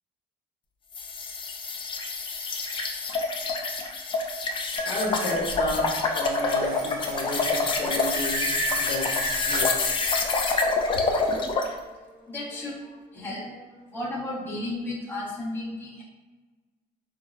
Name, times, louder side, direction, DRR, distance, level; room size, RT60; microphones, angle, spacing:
sound 1, 0.9-11.7, left 3 dB, 30° left, 0.4 m, -27 dB
voice 1, 4.8-8.5 8.8-9.7, left 1 dB, 70° left, -4 dB, 1.0 m, -32 dB
sound 2, 4.8-9.9, right 3 dB, 80° right, 0.7 m, -36 dB
voice 2, 11.5-16.0, left 1 dB, 10° left, -7 dB, 0.9 m, -35 dB
4.5 x 2.0 x 2.3 m, 1.3 s
cardioid pair, 110°, 17 cm